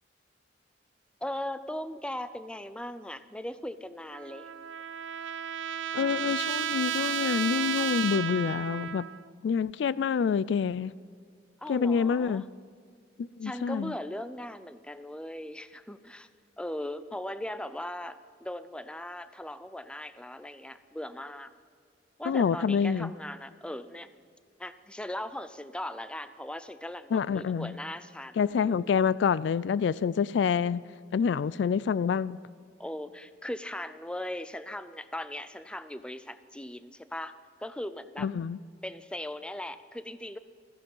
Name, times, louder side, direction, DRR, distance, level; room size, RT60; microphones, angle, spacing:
voice 1, 1.2-4.5 11.6-12.5 13.4-16.3 16.6-21.5 22.2-24.1 24.6-29.0 32.8-37.3 37.6-38.3 38.8-40.4, left 1 dB, 5° left, 0.5 m, -39 dB
Trumpet, 4.1-9.3, right 9 dB, 85° right, 0.4 m, -33 dB
voice 2, 5.9-9.1 9.4-10.9 11.7-12.4 13.2-13.9 22.3-23.1 27.1-27.7 28.4-30.8 31.1-32.4 38.2-38.6, left 6 dB, 65° left, 0.3 m, -27 dB
15.5 x 14.5 x 5.5 m
head